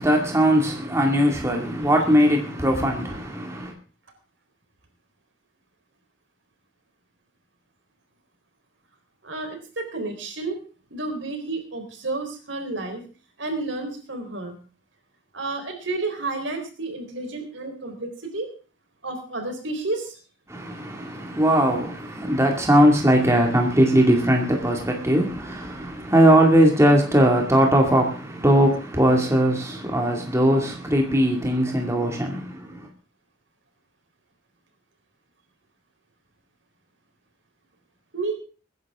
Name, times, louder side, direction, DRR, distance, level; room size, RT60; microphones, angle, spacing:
voice 1, 0.0-3.7 20.5-32.9, equal, 15° right, 2.2 m, -20 dB
voice 2, 9.2-10.6 10.9-13.0 13.4-14.5 15.3-18.5 19.0-20.2 38.1-38.3, right 3 dB, 75° right, 4.0 m, -31 dB
21.5 x 10.5 x 3.7 m
head